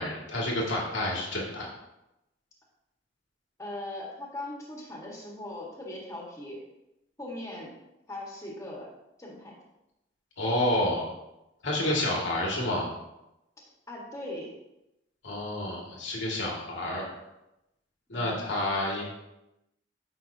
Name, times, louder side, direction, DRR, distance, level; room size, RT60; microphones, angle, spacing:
voice 1, 0.0-1.7 10.4-11.0 11.6-12.9 15.2-17.0 18.1-19.1, left 1 dB, 90° left, -3 dB, 2.1 m, -29 dB
voice 2, 3.6-6.6 7.2-7.7 8.1-8.9 9.2-9.6 13.9-14.5 18.1-18.4, left 1 dB, 15° left, -3 dB, 1.5 m, -39 dB
9.4 x 5.8 x 2.8 m, 0.91 s
head